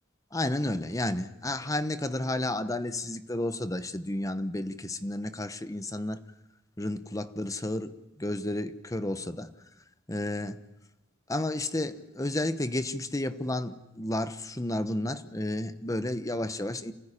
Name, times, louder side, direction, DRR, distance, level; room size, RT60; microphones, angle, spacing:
voice 1, 0.3-6.2 6.8-9.5 10.1-10.6 11.3-16.9, left 1 dB, 20° left, 12 dB, 1.0 m, -31 dB
28.5 x 15.0 x 10.0 m, 0.98 s
head